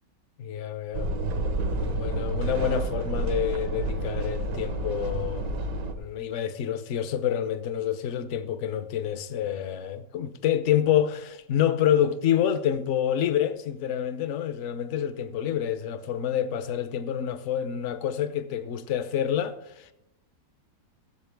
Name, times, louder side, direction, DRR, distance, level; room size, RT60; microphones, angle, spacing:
voice 1, 0.4-1.1 1.7-5.6 6.0-19.9, left 10 dB, 65° left, 0.7 m, -27 dB
sound 1, 0.9-5.9, right 2 dB, 80° right, 1.7 m, -29 dB
16.0 x 7.3 x 3.5 m
omnidirectional pair, 1.9 m